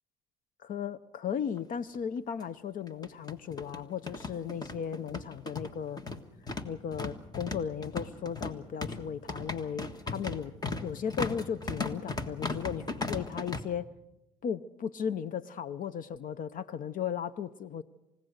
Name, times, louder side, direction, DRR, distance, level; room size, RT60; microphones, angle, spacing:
voice 1, 0.6-6.0 6.6-10.5 10.8-13.9 14.4-17.8, left 8 dB, 55° left, 16 dB, 0.6 m, -36 dB
sound 1, 1.6-1.7 1.9-2.0 2.9-13.6, left 3 dB, 25° left, 1.6 m, -37 dB
28.5 x 16.5 x 6.5 m, 0.94 s
cardioid pair, 110°, 17 cm